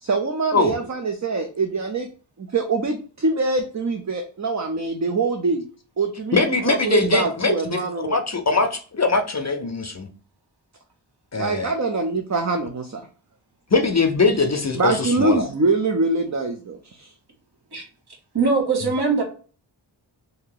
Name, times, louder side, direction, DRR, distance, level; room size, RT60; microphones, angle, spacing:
voice 1, 0.0-2.1 2.4-5.6 6.0-8.2 11.4-13.0 14.7-17.1, right 3 dB, 40° right, 4 dB, 0.5 m, -24 dB
voice 2, 6.3-7.8 8.1-10.1 11.3-11.7 13.7-15.4, left 3 dB, 35° left, 6 dB, 0.5 m, -21 dB
voice 3, 18.3-19.2, right 4 dB, 55° right, 0 dB, 1.2 m, -21 dB
2.8 x 2.7 x 3.8 m, 0.39 s
wide cardioid pair, 50°, 45 cm